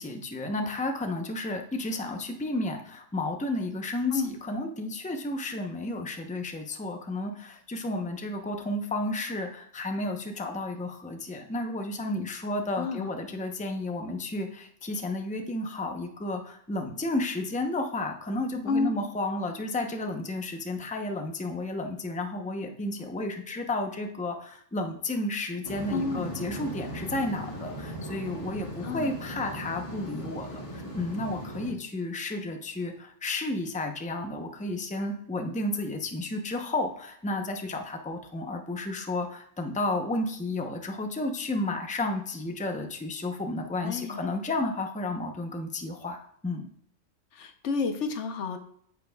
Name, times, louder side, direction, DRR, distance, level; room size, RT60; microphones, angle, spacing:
voice 1, 0.0-46.7, left 2 dB, 10° left, 4 dB, 0.6 m, -32 dB
voice 2, 12.8-13.1 18.7-18.9 25.9-26.3 28.8-29.1 43.8-44.2 47.3-48.6, left 4 dB, 75° left, 7 dB, 1.1 m, -30 dB
sound 1, 25.6-31.7, equal, 25° left, 1.8 m, -38 dB
8.8 x 8.3 x 2.3 m, 0.65 s
omnidirectional pair, 1.2 m